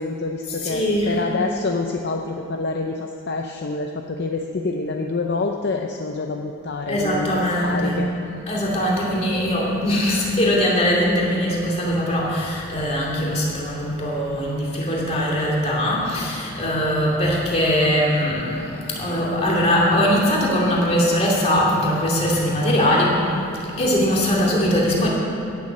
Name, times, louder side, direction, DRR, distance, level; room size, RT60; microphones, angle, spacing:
voice 1, 0.0-8.1, left 3 dB, 50° left, 3 dB, 0.6 m, -27 dB
voice 2, 0.6-1.2 6.9-8.0 8.5-23.4 23.8-25.1, equal, 30° left, -4 dB, 2.5 m, -21 dB
16.5 x 7.2 x 6.5 m, 2.8 s
head